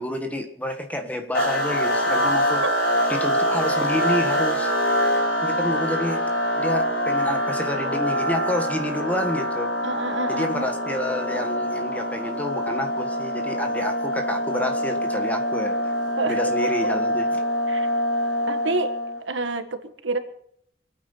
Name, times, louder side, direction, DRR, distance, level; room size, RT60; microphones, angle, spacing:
voice 1, 0.0-2.6 3.1-4.7 5.4-6.3 6.6-9.7 10.3-15.9 16.3-17.4, left 1 dB, 10° left, 5 dB, 1.6 m, -29 dB
sound 1, 1.3-19.2, equal, 50° left, 7.8 m, -24 dB
voice 2, 9.8-10.7 16.2-16.7 17.7-17.9 18.5-18.9 19.3-20.2, right 3 dB, 90° right, 8 dB, 1.6 m, -28 dB
24.0 x 9.4 x 5.6 m, 0.71 s
head